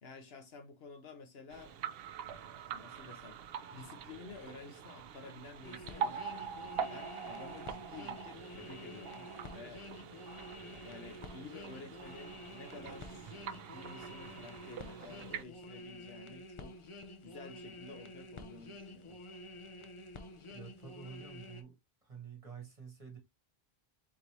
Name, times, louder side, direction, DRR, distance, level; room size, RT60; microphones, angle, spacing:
voice 1, 0.0-1.7 2.7-3.4 3.7-6.3 6.9-9.8 10.8-13.4 13.7-16.7 17.2-19.2, left 4 dB, 75° left, 1.2 m, -51 dB
sound 1, 1.5-15.4, right 7 dB, 70° right, 0.8 m, -44 dB
sound 2, 5.6-21.6, left 1 dB, 40° left, 0.5 m, -49 dB
voice 2, 20.5-23.2, right 6 dB, 35° right, 1.8 m, -49 dB
4.0 x 3.8 x 3.0 m
omnidirectional pair, 1.1 m